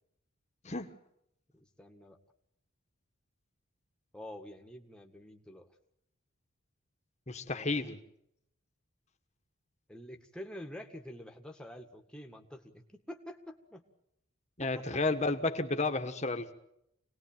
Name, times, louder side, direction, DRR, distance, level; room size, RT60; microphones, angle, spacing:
voice 1, 1.5-2.2 4.1-5.7 7.5-7.9 9.9-13.8 14.6-15.0, left 1 dB, 5° left, 3 dB, 1.8 m, -48 dB
voice 2, 7.3-8.0 14.6-16.5, left 3 dB, 30° left, 7 dB, 1.6 m, -32 dB
26.5 x 19.5 x 8.9 m, 0.78 s
head